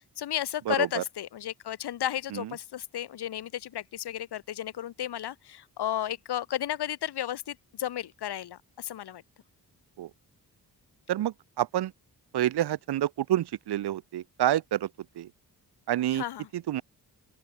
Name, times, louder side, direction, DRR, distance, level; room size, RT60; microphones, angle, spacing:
voice 1, 0.0-9.2 16.1-16.5, left 11 dB, 85° left, 1.4 m, -33 dB
voice 2, 0.7-1.0 10.0-10.1 11.1-11.9 12.3-14.9 15.2-15.3 15.9-16.2 16.7-16.8, right 12 dB, 85° right, 0.9 m, -28 dB
open air
cardioid pair, 80°, 39 cm